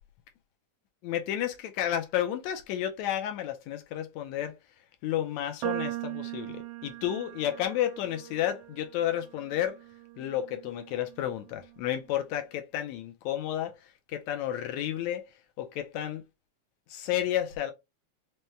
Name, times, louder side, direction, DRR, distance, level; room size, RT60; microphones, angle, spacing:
voice 1, 1.0-4.5 5.0-9.8 10.2-15.3 15.6-16.2 16.9-17.7, left 11 dB, 80° left, 1.8 m, -31 dB
sound 1, 5.6-12.0, right 16 dB, 80° right, 1.7 m, -40 dB
5.5 x 2.1 x 3.1 m
omnidirectional pair, 3.3 m